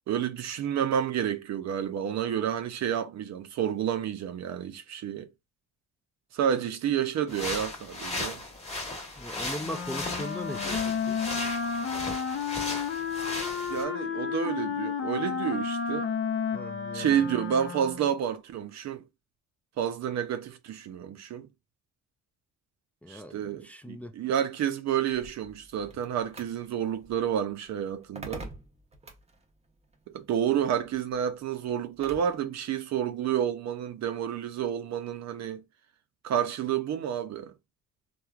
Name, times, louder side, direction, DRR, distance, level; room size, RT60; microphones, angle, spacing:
voice 1, 0.1-5.3 6.3-8.4 13.7-16.1 16.9-19.0 19.8-21.5 23.1-28.5 30.1-35.6 36.2-37.5, right 9 dB, 65° right, 0.5 m, -30 dB
sound 1, 7.3-13.8, left 2 dB, 20° left, 1.1 m, -36 dB
voice 2, 9.2-11.2 16.5-17.2 23.0-24.2, equal, 5° left, 0.3 m, -39 dB
Wind instrument woodwind instrument, 9.6-18.2, left 6 dB, 45° left, 0.6 m, -32 dB
sound 2, 25.1-32.4, right 2 dB, 20° right, 0.7 m, -48 dB
3.0 x 2.2 x 2.3 m
cardioid pair, 90°, 30 cm